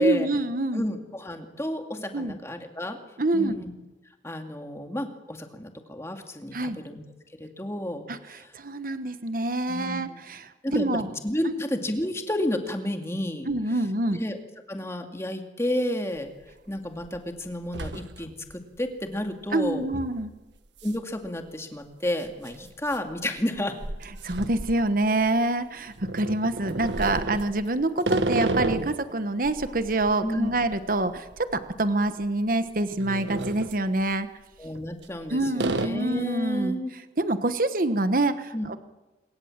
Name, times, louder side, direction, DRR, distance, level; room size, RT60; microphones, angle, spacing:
voice 1, 0.0-0.8 2.1-2.3 3.2-3.6 6.5-6.8 8.1-11.1 13.5-14.2 19.5-20.3 24.2-34.3 35.3-36.7 37.2-38.8, right 2 dB, 50° right, 11 dB, 1.2 m, -26 dB
voice 2, 0.7-3.0 3.3-3.7 4.2-7.0 7.4-8.5 9.7-10.2 10.6-13.5 14.1-14.4 14.7-16.3 16.7-19.8 20.8-23.8 30.2-30.5 34.6-36.9 38.5-38.7, left 1 dB, 15° left, 5 dB, 2.3 m, -31 dB
sound 1, 16.2-16.3 16.8-17.2 17.5-18.5 18.8-18.9 19.9-20.2 20.8-21.0 21.2-21.3 22.3-25.4 25.9-29.0 29.4-31.8 32.0-32.2 32.8-33.8 34.6-35.2 35.6-35.9, right 2 dB, 80° right, 1.4 m, -32 dB
26.0 x 23.0 x 7.4 m, 1.1 s
head